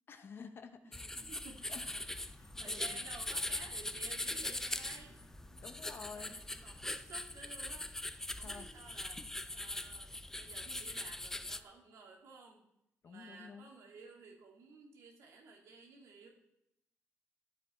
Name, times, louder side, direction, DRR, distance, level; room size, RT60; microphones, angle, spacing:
voice 1, 0.1-1.3 1.7-3.0 5.6-6.4 8.4-8.7 13.0-13.7, left 5 dB, 50° left, 8 dB, 0.9 m, -51 dB
sound 1, 0.9-11.6, left 1 dB, 10° left, 0.4 m, -41 dB
voice 2, 1.1-1.8 2.0-5.2 5.6-8.1 8.4-9.2 9.5-10.1 10.4-12.6 13.0-16.3, right 4 dB, 80° right, 0 dB, 2.3 m, -55 dB
sound 2, 1.5-6.9, left 1 dB, 25° left, 1.6 m, -59 dB
12.5 x 7.8 x 4.3 m, 0.82 s
cardioid pair, 125°, 5 cm